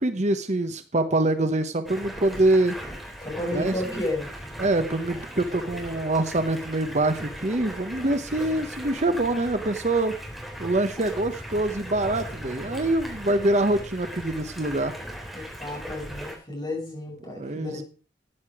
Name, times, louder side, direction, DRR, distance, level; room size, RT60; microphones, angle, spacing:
voice 1, 0.0-2.8 3.5-3.7 4.6-10.2 10.6-14.9 17.3-17.8, right 2 dB, 40° right, 9 dB, 0.9 m, -25 dB
Stream, 1.9-16.4, equal, ahead, 3.5 m, -38 dB
voice 2, 3.2-4.3 15.3-17.8, left 1 dB, 25° left, -1 dB, 5.7 m, -32 dB
13.0 x 9.6 x 4.9 m, 0.37 s
head